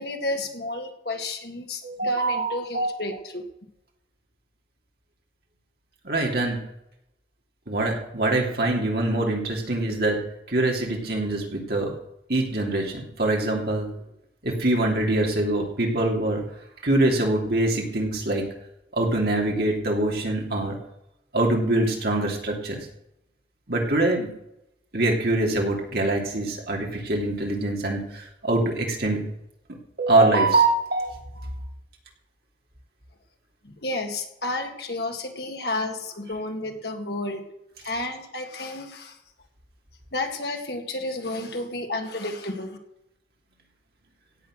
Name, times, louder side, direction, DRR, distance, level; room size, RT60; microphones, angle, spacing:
voice 1, 0.0-3.4 33.6-37.4 37.8-39.2 40.1-42.8, left 2 dB, 60° left, 4 dB, 2.0 m, -31 dB
voice 2, 1.8-2.9 6.0-6.6 7.7-10.2 10.5-11.9 12.3-13.9 14.4-16.4 16.8-18.4 18.9-20.7 21.3-22.8 23.7-24.3 24.9-29.2 30.0-31.1, right 2 dB, 55° right, 0 dB, 2.9 m, -24 dB
16.5 x 8.2 x 6.4 m, 0.82 s
head